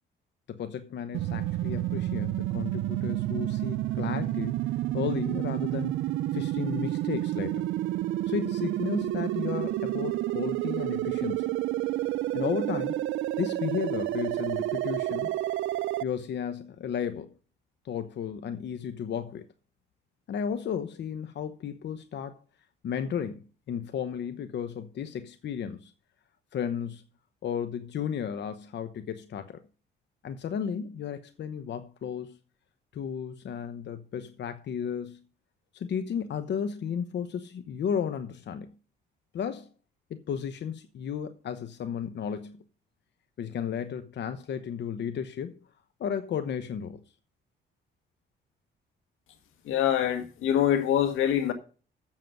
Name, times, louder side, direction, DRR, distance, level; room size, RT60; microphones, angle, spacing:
voice 1, 0.5-4.5 4.9-5.9 6.3-7.7 8.3-11.5 12.3-13.0 13.4-15.3 16.0-17.3 17.8-19.5 20.3-22.4 22.8-25.9 26.5-27.0 27.4-29.6 30.2-32.4 32.9-35.2 35.7-38.7 39.3-39.7 40.1-42.6 43.4-45.6 46.0-47.0, left 7 dB, 65° left, 1.0 m, -34 dB
sound 1, 1.1-16.0, right 15 dB, 80° right, 0.5 m, -30 dB
voice 2, 49.7-51.5, left 10 dB, 85° left, 1.8 m, -24 dB
7.5 x 7.3 x 7.8 m
cardioid pair, 90°, 20 cm